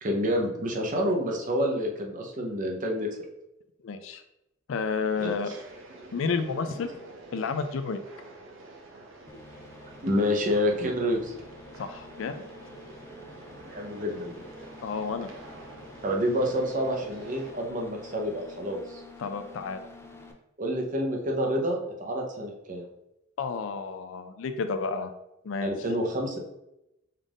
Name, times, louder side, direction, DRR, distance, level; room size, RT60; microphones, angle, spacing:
voice 1, 0.0-3.1 5.2-5.3 10.0-11.3 13.7-14.4 16.0-19.0 20.6-22.9 25.6-26.4, equal, 40° right, 0 dB, 0.8 m, -28 dB
voice 2, 3.8-4.2 4.7-5.5 6.1-6.9 7.3-8.0 11.8-12.3 14.8-15.3 19.2-19.8 23.4-25.1 25.4-25.7, left 5 dB, 75° left, 8 dB, 0.4 m, -31 dB
sound 1, 5.5-17.5, right 2 dB, 90° right, 0.8 m, -48 dB
sound 2, 9.3-20.3, left 1 dB, 15° left, 0.4 m, -48 dB
5.6 x 2.5 x 3.5 m, 0.89 s
head